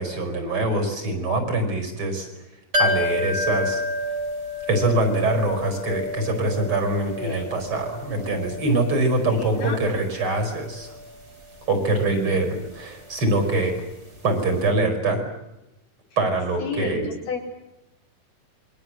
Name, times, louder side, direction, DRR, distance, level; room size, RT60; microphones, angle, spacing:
voice 1, 0.0-2.3 2.8-3.8 4.7-11.0 11.7-13.8 14.2-15.2 16.2-17.1, right 2 dB, 40° right, 6 dB, 6.0 m, -24 dB
sound 1, 2.7-14.3 14.6-14.7, left 1 dB, 20° right, 3.6 m, -31 dB
voice 2, 7.2-7.5 9.3-9.8 12.1-12.4 16.6-17.4, left 2 dB, 75° left, 1 dB, 5.8 m, -31 dB
28.0 x 23.5 x 7.9 m, 0.93 s
omnidirectional pair, 3.9 m